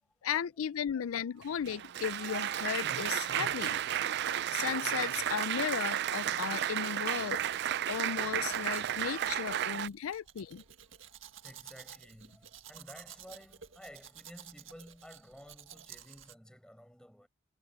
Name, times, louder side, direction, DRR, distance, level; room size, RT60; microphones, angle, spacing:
voice 1, 0.2-3.8 4.5-7.4 7.9-10.6, left 8 dB, 80° left, 0.4 m, -35 dB
voice 2, 1.0-1.4 10.1-10.3 10.8-17.3, equal, 5° left, 7.4 m, -54 dB
Applause, 1.4-9.9, right 10 dB, 50° right, 0.3 m, -33 dB
Domestic sounds home sounds, 7.5-16.3, right 9 dB, 65° right, 1.8 m, -53 dB
head